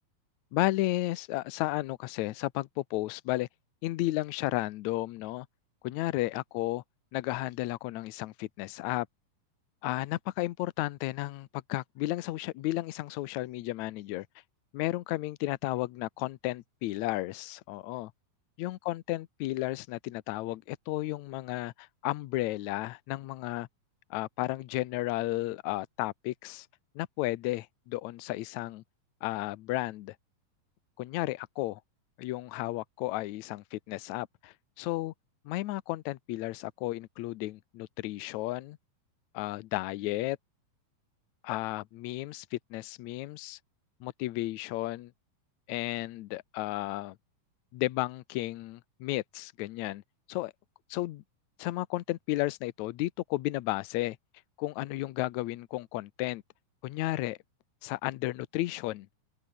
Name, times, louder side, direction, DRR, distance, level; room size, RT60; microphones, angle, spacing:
voice 1, 0.5-3.5 3.8-5.5 5.8-6.8 7.1-9.1 9.8-14.3 14.7-18.1 18.6-23.7 24.1-26.7 27.0-28.8 29.2-30.2 31.0-31.8 32.2-35.1 35.5-38.8 39.3-40.4 41.4-43.6 44.0-45.1 45.7-47.2 47.7-50.0 50.3-50.5 50.9-51.2 51.6-54.2 54.6-56.4 56.8-57.4 57.8-59.1, left 18 dB, 75° left, 1.8 m, -33 dB
omnidirectional pair, 4.2 m